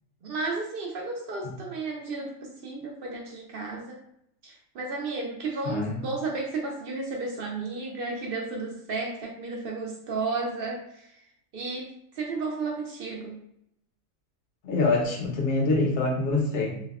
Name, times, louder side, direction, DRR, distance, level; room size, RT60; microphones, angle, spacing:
voice 1, 0.2-4.0 4.4-11.2 11.5-13.4, right 3 dB, 65° right, 0 dB, 0.6 m, -33 dB
voice 2, 5.6-6.0 14.6-16.8, left 3 dB, 65° left, -1 dB, 1.0 m, -25 dB
3.3 x 2.1 x 2.3 m, 0.74 s
omnidirectional pair, 1.4 m